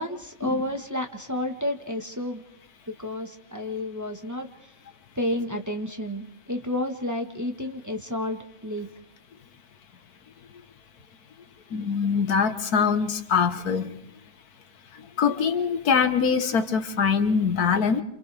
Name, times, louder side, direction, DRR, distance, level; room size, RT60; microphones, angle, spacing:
voice 1, 0.0-2.4 3.0-4.5 5.1-8.9, left 1 dB, 15° right, 4 dB, 1.2 m, -31 dB
voice 2, 11.7-13.9 15.2-18.0, left 6 dB, 90° left, 9 dB, 1.8 m, -23 dB
28.5 x 28.0 x 3.4 m, 0.73 s
omnidirectional pair, 1.6 m